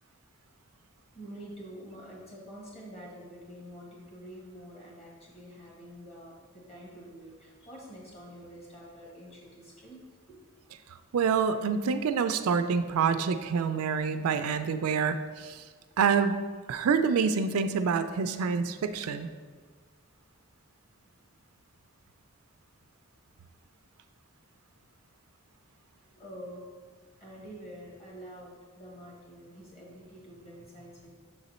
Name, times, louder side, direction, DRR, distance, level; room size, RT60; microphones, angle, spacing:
voice 1, 1.1-10.0 10.3-10.4 26.1-26.8 27.2-31.1, equal, 30° left, -4 dB, 1.5 m, -47 dB
voice 2, 11.1-15.6 16.0-16.4 16.7-19.3, right 6 dB, 90° right, 10 dB, 0.4 m, -27 dB
6.7 x 4.0 x 4.2 m, 1.5 s
head